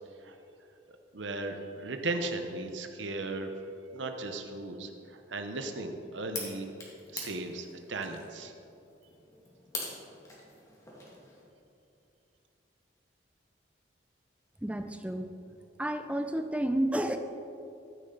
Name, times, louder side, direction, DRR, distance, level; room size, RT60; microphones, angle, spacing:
voice 1, 1.1-3.5 3.9-6.7 7.1-8.5, right 2 dB, 80° right, 6 dB, 0.9 m, -36 dB
sound 1, 6.3-11.4, left 2 dB, 15° left, 2.1 m, -44 dB
voice 2, 14.6-15.3 15.8-17.2, right 1 dB, 5° right, 7 dB, 0.5 m, -31 dB
13.5 x 9.9 x 3.9 m, 2.7 s
head